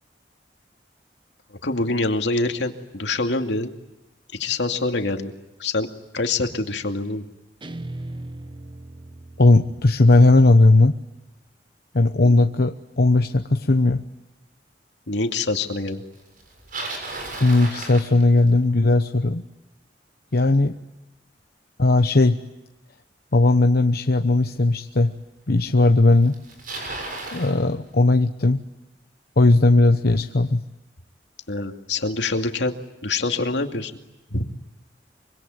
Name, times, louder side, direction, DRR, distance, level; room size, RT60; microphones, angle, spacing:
voice 1, 1.5-3.7 4.3-5.3 5.6-7.2 12.2-12.3 15.1-16.0 31.5-32.8 33.0-33.9 34.3-34.5, left 3 dB, 80° left, 5 dB, 2.4 m, -25 dB
Guitar, 7.6-10.8, right 1 dB, 30° right, 1.1 m, -39 dB
voice 2, 9.4-10.9 11.9-14.0 17.4-19.4 20.3-20.8 21.8-22.4 23.3-25.1 25.5-26.4 27.3-28.6 29.4-30.6, left 2 dB, 60° left, 6 dB, 1.0 m, -17 dB
Bicycle, 16.4-18.7 23.8-23.9 24.7-24.8 25.8-25.9 26.1-27.6, right 2 dB, 50° right, 7.0 m, -34 dB
25.0 x 25.0 x 9.4 m, 0.95 s
head